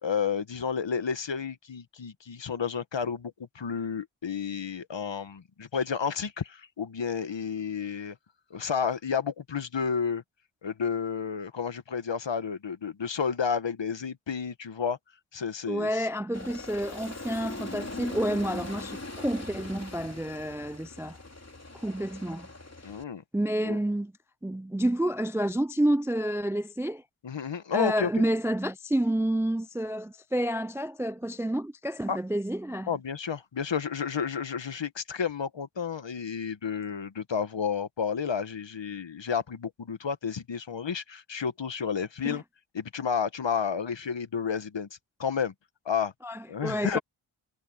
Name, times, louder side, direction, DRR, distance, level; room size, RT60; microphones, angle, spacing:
voice 1, 0.0-8.2 8.5-10.2 10.6-15.0 15.3-16.1 22.8-23.2 23.6-23.8 27.2-28.2 32.1-32.2 32.9-42.4 42.7-44.9 45.2-45.5 45.8-46.1 46.5-47.0, left 6 dB, 60° left, 1.4 m, -31 dB
voice 2, 15.7-21.2 21.7-22.5 23.3-24.1 24.4-27.0 27.7-32.9 42.2-42.4 46.2-47.0, right 1 dB, 5° right, 0.4 m, -29 dB
Aircraft, 16.3-23.0, left 2 dB, 30° left, 3.6 m, -41 dB
cardioid pair, 45°, 50 cm